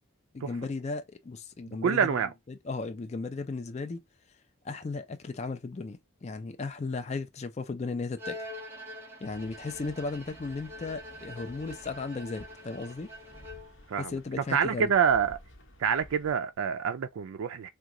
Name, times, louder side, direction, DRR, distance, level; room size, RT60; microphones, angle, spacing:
voice 1, 0.3-2.1 2.5-4.0 4.6-8.4 9.2-13.1 14.1-14.9, left 3 dB, 30° left, 0.4 m, -36 dB
voice 2, 1.8-2.3 13.9-15.4 15.8-17.7, right 7 dB, 75° right, 0.4 m, -27 dB
Bowed string instrument, 8.2-13.9, left 1 dB, 10° right, 0.9 m, -45 dB
sound 1, 9.2-16.3, equal, 60° left, 1.0 m, -53 dB
2.9 x 2.2 x 3.7 m
head